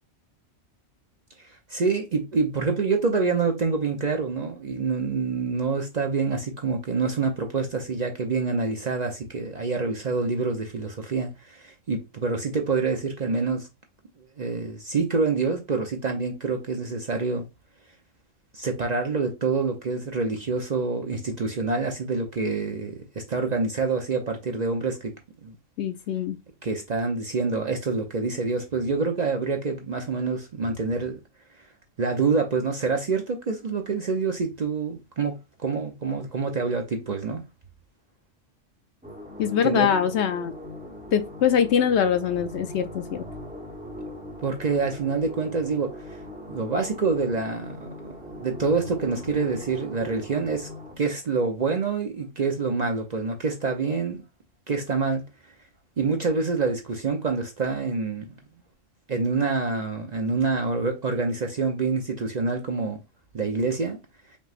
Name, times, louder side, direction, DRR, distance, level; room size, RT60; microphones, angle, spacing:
voice 1, 1.7-13.7 14.4-17.4 18.5-25.1 25.4-25.6 26.6-31.2 32.0-37.4 39.6-39.9 44.4-45.9 46.5-50.7 51.0-54.2 54.7-55.2 56.0-58.3 59.1-63.0 63.3-64.0, right 4 dB, 45° right, 0.6 m, -26 dB
voice 2, 25.8-26.4 39.4-40.5 41.1-43.2, left 8 dB, 70° left, 0.8 m, -23 dB
sound 1, 39.0-51.0, left 1 dB, 5° right, 0.9 m, -40 dB
5.3 x 3.2 x 2.4 m
omnidirectional pair, 1.3 m